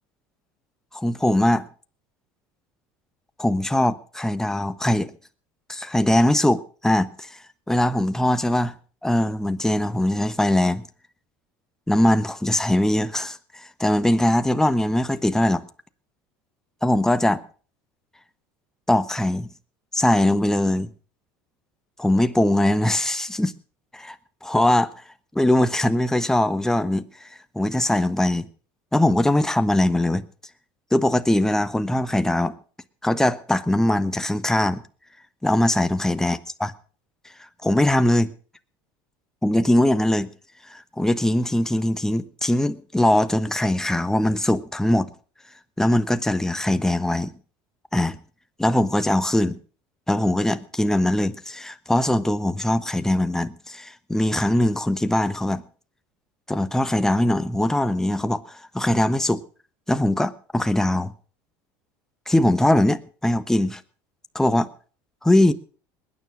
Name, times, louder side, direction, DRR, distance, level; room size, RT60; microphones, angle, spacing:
voice 1, 0.9-1.6 3.4-5.1 5.7-7.3 7.7-8.7 9.0-10.8 11.9-15.6 16.8-17.4 18.9-19.5 19.9-20.9 22.0-23.5 23.9-24.2 24.4-24.9 25.3-27.1 27.5-28.5 28.9-30.2 30.9-32.5 33.0-34.8 35.4-36.7 37.6-38.3 39.4-40.3 40.7-45.1 45.8-47.3 47.9-48.2 48.6-49.6 50.1-55.6 56.5-59.4 59.9-61.1 62.3-63.8 64.3-64.7 65.2-65.5, left 1 dB, 5° left, 1.2 m, -21 dB
20.5 x 9.7 x 6.3 m
supercardioid pair, 110°, 10 cm